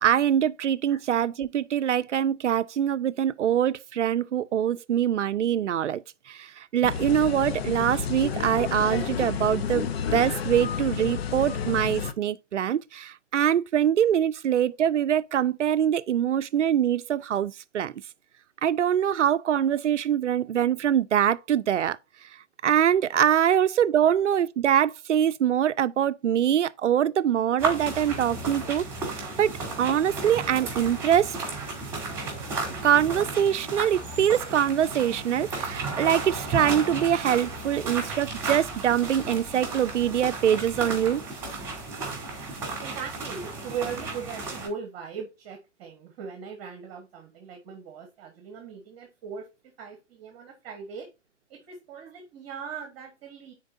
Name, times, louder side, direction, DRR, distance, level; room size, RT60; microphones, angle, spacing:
voice 1, 0.0-6.0 6.3-17.9 18.6-22.0 22.6-28.8 29.2-31.3 32.8-41.2, right 9 dB, 75° right, 0.5 m, -24 dB
sound 1, 6.8-12.1, left 7 dB, 55° left, 0.8 m, -30 dB
sound 2, 27.6-44.7, right 3 dB, 5° right, 3.2 m, -34 dB
voice 2, 42.8-49.5 49.8-51.1 51.5-53.5, right 6 dB, 25° right, 1.4 m, -39 dB
9.4 x 4.5 x 2.6 m
hypercardioid pair, 135°, 36 cm